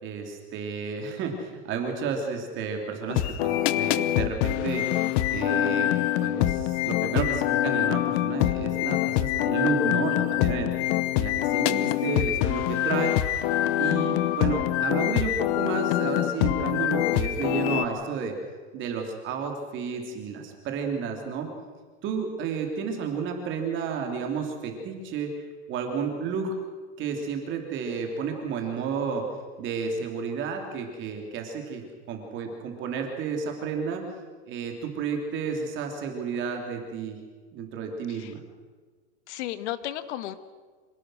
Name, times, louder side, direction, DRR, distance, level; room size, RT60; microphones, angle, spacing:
voice 1, 0.0-4.8 5.3-5.9 6.2-10.7 11.1-13.1 13.8-18.4 18.7-21.5 22.0-25.3 25.7-26.5 27.0-29.2 29.6-34.0 34.5-37.2 37.5-38.4, right 5 dB, 35° right, 3 dB, 3.1 m, -31 dB
sound 1, 3.1-17.8, left 14 dB, 50° left, 0.9 m, -25 dB
voice 2, 39.3-40.4, left 13 dB, 70° left, 12 dB, 1.6 m, -34 dB
26.5 x 18.0 x 6.4 m, 1.5 s
supercardioid pair, 165°, 35 cm